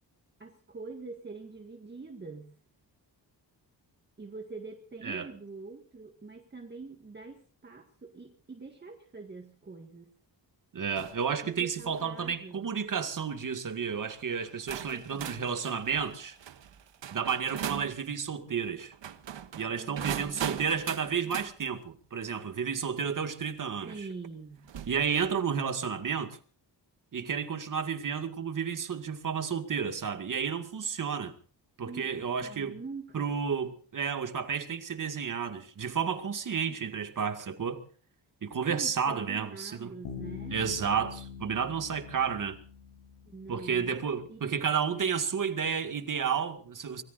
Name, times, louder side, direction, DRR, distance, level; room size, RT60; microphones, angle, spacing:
voice 1, 0.4-2.6 4.2-10.1 11.4-12.7 14.9-15.6 19.7-20.5 23.9-24.7 31.9-33.3 36.7-36.9 38.6-40.6 43.3-44.0 44.3-44.4, right 3 dB, 25° right, 1.8 m, -45 dB
voice 2, 10.7-16.4 17.1-18.9 19.5-24.1 24.9-26.4 27.1-31.3 31.8-32.8 33.1-37.8 38.4-39.9 40.5-42.6 43.5-47.0, right 6 dB, 45° right, 2.1 m, -31 dB
sound 1, 11.0-11.3 11.8-12.1 12.9-13.2 14.1-14.2 14.7-17.9 18.9-21.5 23.3-23.4 24.6-25.4, right 9 dB, 80° right, 1.5 m, -40 dB
Bass guitar, 40.0-43.8, left 6 dB, 85° left, 8.0 m, -44 dB
25.0 x 22.0 x 2.6 m
wide cardioid pair, 180°, 43 cm